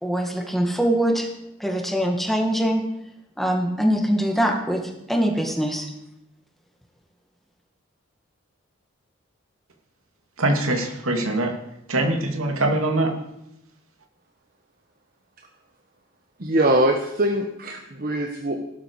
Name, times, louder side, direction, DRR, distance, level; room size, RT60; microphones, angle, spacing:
voice 1, 0.0-1.3 1.6-2.8 3.4-4.8 5.1-5.9, equal, ahead, 2 dB, 1.9 m, -23 dB
voice 2, 10.4-11.5 11.9-13.1, right 2 dB, 85° right, 3 dB, 2.6 m, -23 dB
voice 3, 16.4-18.6, right 1 dB, 45° right, 3 dB, 1.2 m, -22 dB
16.0 x 12.5 x 4.8 m, 0.84 s
head